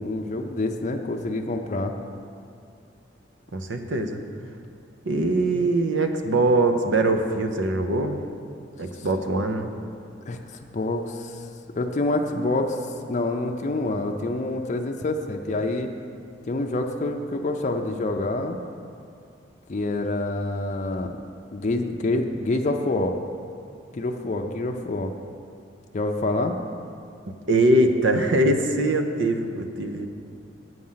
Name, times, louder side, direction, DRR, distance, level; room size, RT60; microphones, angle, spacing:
voice 1, 0.0-1.9 10.3-10.4 10.7-11.4 11.8-12.8 13.1-15.9 16.5-18.6 19.7-21.2 21.5-23.2 23.9-25.1 25.9-26.6, left 2 dB, 40° left, 3 dB, 0.5 m, -26 dB
voice 2, 3.5-4.2 5.1-8.2 8.8-9.7 27.5-30.1, right 2 dB, 80° right, 6 dB, 0.7 m, -22 dB
7.8 x 7.5 x 5.6 m, 2.4 s
head